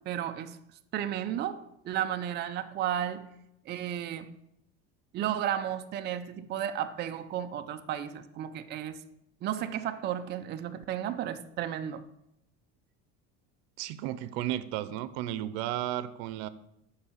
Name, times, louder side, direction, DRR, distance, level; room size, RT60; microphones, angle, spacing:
voice 1, 0.1-0.6 0.9-3.3 3.7-4.4 5.1-9.0 9.4-12.0, right 10 dB, 35° right, 0.5 m, -33 dB
voice 2, 13.8-16.5, right 13 dB, 85° right, 0.7 m, -33 dB
6.7 x 5.6 x 7.3 m
cardioid pair, 145°, 32 cm